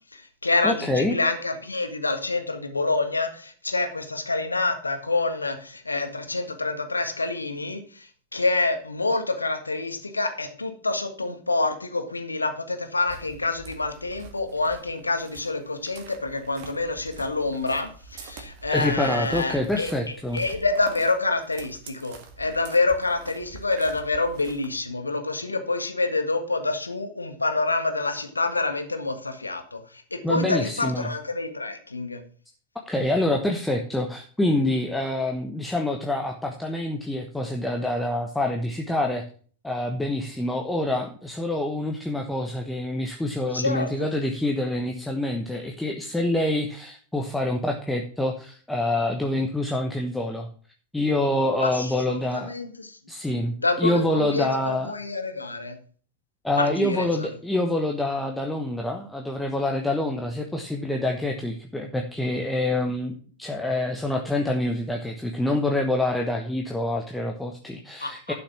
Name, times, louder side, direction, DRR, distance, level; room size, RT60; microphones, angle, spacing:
voice 1, 0.1-19.9 20.3-32.2 43.5-44.1 51.6-53.0 53.6-55.8 56.6-57.3 68.0-68.3, left 3 dB, 80° left, 7 dB, 1.6 m, -27 dB
voice 2, 0.6-1.2 18.7-20.4 30.2-31.1 32.9-39.2 39.6-50.5 50.9-52.5 53.1-55.0 56.4-68.3, left 1 dB, 5° left, 2 dB, 1.2 m, -26 dB
sound 1, 13.0-24.9, right 5 dB, 45° right, 2.0 m, -46 dB
11.5 x 6.0 x 5.9 m, 0.44 s
figure-of-eight pair, 90°, 0 cm